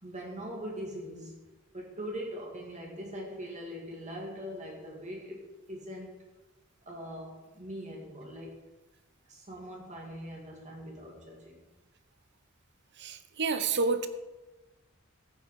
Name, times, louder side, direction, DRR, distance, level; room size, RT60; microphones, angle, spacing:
voice 1, 0.0-1.4 1.7-6.2 6.9-8.6 9.3-11.6, equal, 35° right, -1 dB, 2.1 m, -41 dB
voice 2, 13.0-14.1, right 4 dB, 60° right, 10 dB, 0.9 m, -29 dB
14.0 x 8.3 x 4.8 m, 1.1 s
head